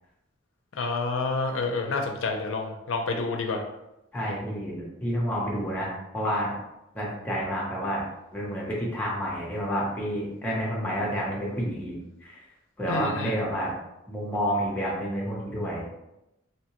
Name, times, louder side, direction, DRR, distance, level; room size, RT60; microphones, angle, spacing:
voice 1, 0.8-3.6 12.9-13.4, left 3 dB, 70° left, 3 dB, 0.4 m, -28 dB
voice 2, 4.1-6.5 6.9-8.0 8.3-12.4 12.8-13.7 14.1-15.9, equal, 10° left, -4 dB, 0.7 m, -29 dB
2.8 x 2.1 x 2.9 m, 0.89 s
head